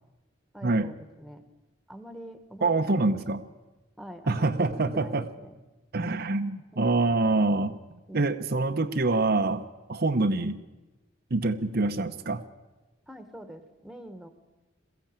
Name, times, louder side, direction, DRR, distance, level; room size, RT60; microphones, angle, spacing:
voice 1, 0.5-1.4 1.9-3.0 4.0-5.5 6.7-7.2 8.1-8.2 13.1-14.3, equal, ahead, 9 dB, 1.5 m, -45 dB
voice 2, 2.6-3.4 4.3-5.2 5.9-7.7 8.1-10.6 11.3-12.4, right 3 dB, 55° right, 7 dB, 0.8 m, -25 dB
22.0 x 15.0 x 8.8 m, 1.1 s
head